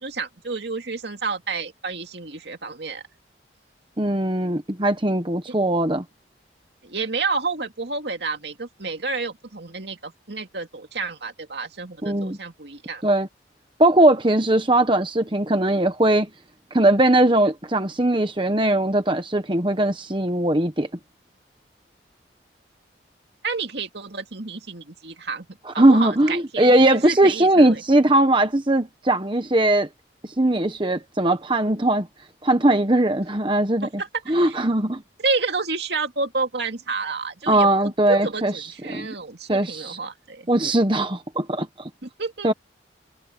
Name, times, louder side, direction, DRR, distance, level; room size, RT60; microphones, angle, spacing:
voice 1, 0.0-3.0 5.5-5.6 6.8-13.0 23.4-25.5 25.7-27.8 34.0-34.6 35.2-40.5 42.0-42.5, right 4 dB, 65° right, 2.4 m, -30 dB
voice 2, 4.0-6.0 12.0-12.4 13.0-13.3 13.8-16.3 16.7-20.9 25.8-29.9 30.4-32.1 32.4-33.9 34.3-35.0 37.5-38.5 38.9-39.1 39.5-40.0 40.5-41.7 42.4-42.5, right 1 dB, 25° right, 1.1 m, -19 dB
head